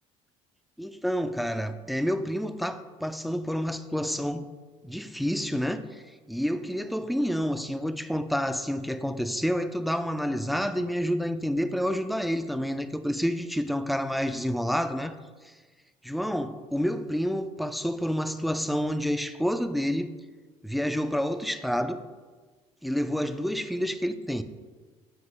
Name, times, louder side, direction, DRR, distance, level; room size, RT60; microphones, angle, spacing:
voice 1, 0.8-4.5 4.8-15.2 15.4-15.5 16.0-20.1 20.6-22.0 22.8-24.4, equal, ahead, 10 dB, 0.3 m, -29 dB
7.9 x 2.9 x 5.3 m, 1.4 s
cardioid pair, 115°, 13 cm